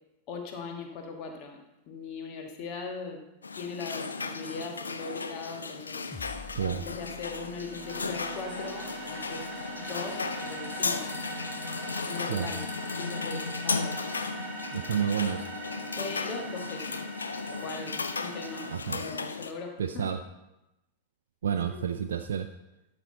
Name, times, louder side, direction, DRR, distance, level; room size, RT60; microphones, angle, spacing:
voice 1, 0.3-1.6 1.9-3.2 3.5-6.0 6.7-9.5 9.7-11.1 12.1-12.6 12.9-14.0 16.0-17.0 17.5-20.1 21.7-21.8, left 4 dB, 40° left, 3 dB, 1.5 m, -39 dB
sound 1, 3.4-19.5, left 4 dB, 75° left, 0.5 m, -35 dB
sound 2, 6.1-10.7, left 4 dB, 15° left, 0.7 m, -50 dB
voice 2, 6.5-6.9 12.3-12.5 14.7-15.5 18.7-19.0 19.8-20.2 21.4-22.5, right 8 dB, 65° right, 7 dB, 0.4 m, -30 dB
sound 3, 6.9-18.8, right 3 dB, 20° right, 3.0 m, -42 dB
12.0 x 6.2 x 3.9 m, 0.94 s
figure-of-eight pair, 90°, 0 cm